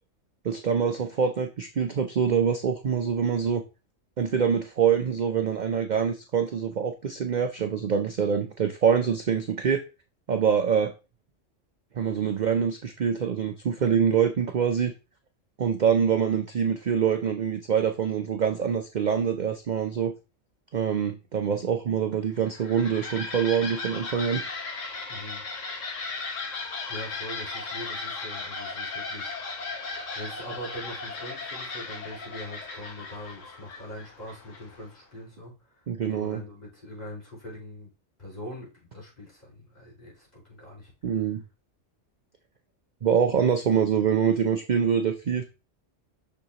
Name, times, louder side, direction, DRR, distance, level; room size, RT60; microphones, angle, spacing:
voice 1, 0.4-3.6 4.2-9.8 10.3-10.9 12.0-14.9 15.6-20.1 20.7-24.4 35.9-36.4 41.0-41.4 43.0-45.5, right 7 dB, 50° right, 6 dB, 0.6 m, -25 dB
sound 1, 22.4-34.9, left 3 dB, 70° left, 1.7 m, -36 dB
voice 2, 25.1-25.4 26.9-29.3 30.1-37.9 38.2-41.2 43.3-43.4, left 1 dB, 30° left, -5 dB, 4.9 m, -42 dB
6.8 x 6.4 x 2.9 m, 0.30 s
omnidirectional pair, 1.3 m